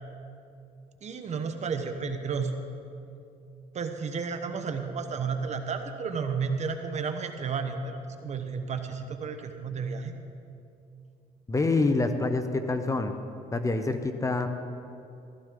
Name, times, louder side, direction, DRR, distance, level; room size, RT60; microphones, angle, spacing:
voice 1, 1.0-2.5 3.7-10.1, right 5 dB, 40° right, 6 dB, 1.0 m, -32 dB
voice 2, 11.5-13.2 13.5-14.5, left 3 dB, 20° left, 8 dB, 0.7 m, -26 dB
15.0 x 13.5 x 3.8 m, 2.6 s
cardioid pair, 110°, 17 cm